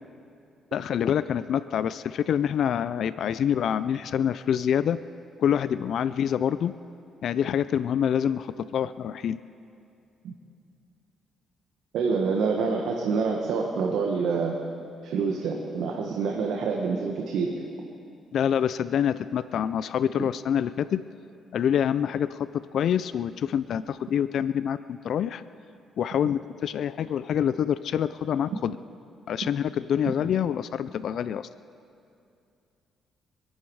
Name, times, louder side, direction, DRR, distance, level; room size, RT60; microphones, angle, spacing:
voice 1, 0.7-5.0 5.4-6.7 7.2-9.4 18.3-21.0 21.5-25.4 26.0-28.8 29.3-31.5, left 9 dB, 65° left, 14 dB, 0.4 m, -26 dB
voice 2, 11.9-14.5 15.0-17.6, right 5 dB, 80° right, 1 dB, 1.5 m, -27 dB
26.5 x 10.5 x 4.8 m, 2.5 s
cardioid pair, 90°, 0 cm